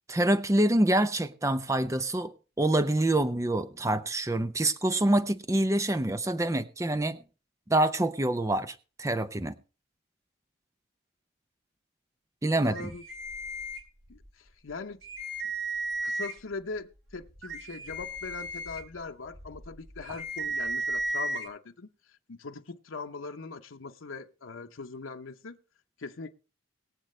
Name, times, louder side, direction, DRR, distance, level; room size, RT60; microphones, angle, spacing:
voice 1, 0.1-7.2 7.7-9.5 12.4-12.9, right 1 dB, 15° right, 0.5 m, -26 dB
voice 2, 12.6-13.0 14.1-15.0 16.0-21.9 22.3-25.6 26.0-26.3, left 4 dB, 85° left, 0.8 m, -41 dB
sound 1, 12.7-14.3 14.7-14.8 15.0-16.6 17.1-21.5, right 1 dB, 80° right, 2.7 m, -35 dB
22.0 x 7.5 x 3.2 m
head